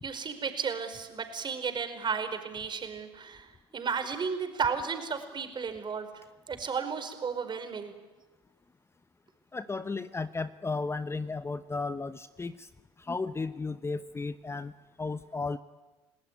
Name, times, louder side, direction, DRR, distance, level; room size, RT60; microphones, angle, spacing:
voice 1, 0.0-7.9, right 6 dB, 35° right, 7 dB, 4.9 m, -34 dB
voice 2, 9.5-12.5 13.1-14.7 15.0-15.6, left 3 dB, 20° left, 13 dB, 1.0 m, -34 dB
30.0 x 19.0 x 9.5 m, 1.2 s
hypercardioid pair, 65°, 13 cm